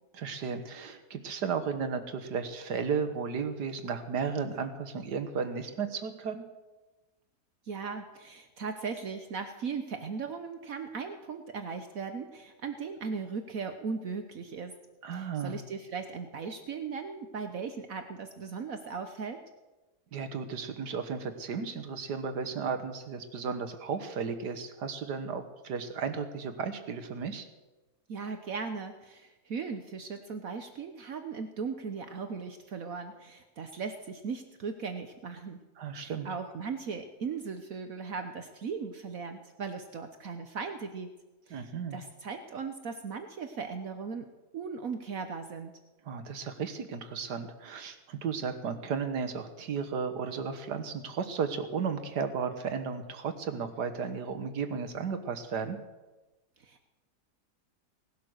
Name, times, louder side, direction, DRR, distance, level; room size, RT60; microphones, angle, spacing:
voice 1, 0.1-6.4 15.0-15.6 20.1-27.5 35.8-36.3 41.5-42.0 46.0-55.8, right 6 dB, 80° right, 9 dB, 1.9 m, -34 dB
voice 2, 7.6-14.7 15.1-19.4 28.1-35.6 35.9-41.1 41.5-44.3 44.5-45.8 56.6-56.9, right 5 dB, 60° right, 7 dB, 1.3 m, -38 dB
18.5 x 12.0 x 6.4 m, 1.1 s
omnidirectional pair, 1.7 m